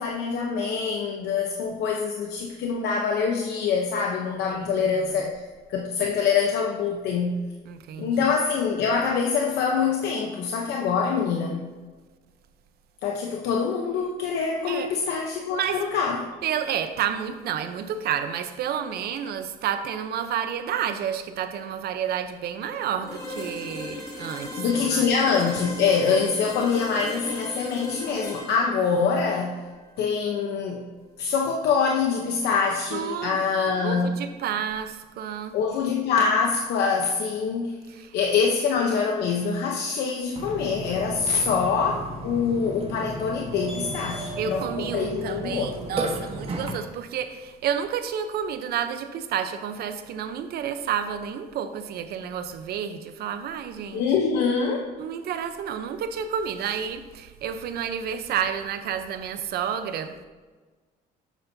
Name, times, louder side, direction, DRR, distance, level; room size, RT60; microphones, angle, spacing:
voice 1, 0.0-7.4 8.0-11.7 13.0-16.3 24.6-29.6 30.0-30.8 31.2-34.1 35.5-37.8 38.1-45.7 53.9-54.9, left 5 dB, 80° left, 1 dB, 0.9 m, -25 dB
voice 2, 4.5-5.3 7.6-8.3 14.6-14.9 15.5-15.8 16.4-25.1 26.1-26.2 32.9-33.5 33.8-35.6 37.9-38.4 44.4-54.1 55.0-60.1, right 8 dB, 70° right, 9 dB, 0.8 m, -30 dB
sound 1, 23.0-30.9, left 2 dB, 20° left, 1.9 m, -37 dB
Burping eructation, 40.3-46.7, right 1 dB, 35° right, 1.4 m, -34 dB
10.5 x 8.3 x 2.8 m, 1.3 s
cardioid pair, 110°, 17 cm